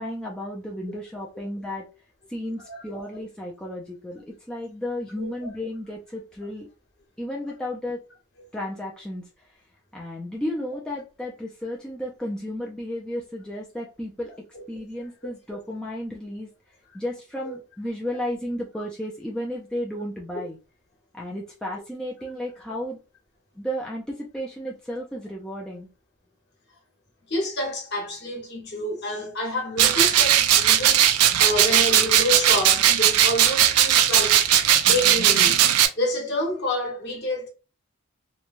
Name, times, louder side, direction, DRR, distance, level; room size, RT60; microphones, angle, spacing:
voice 1, 0.0-1.9 2.3-6.7 7.2-8.0 8.5-9.2 9.9-14.3 14.7-16.5 16.9-20.6 21.1-23.0 23.6-25.9, left 1 dB, 5° left, 0.4 m, -33 dB
voice 2, 5.2-5.5 14.5-14.6 27.3-34.4 34.8-35.6 36.0-37.5, left 1 dB, 50° left, 1.2 m, -28 dB
sound 1, 29.8-35.9, right 10 dB, 90° right, 0.4 m, -18 dB
3.0 x 2.2 x 2.5 m
head